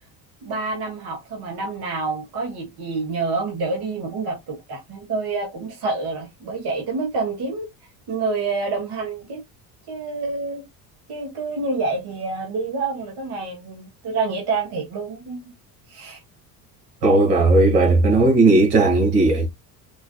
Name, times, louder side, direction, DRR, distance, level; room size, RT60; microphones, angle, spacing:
voice 1, 0.4-7.7 8.1-9.4 9.9-10.6 11.1-15.4 15.9-16.2, right 3 dB, 50° right, 1.7 m, -27 dB
voice 2, 17.0-19.5, right 2 dB, 70° right, 2.4 m, -16 dB
4.8 x 2.5 x 2.4 m
hypercardioid pair, 75°, 47 cm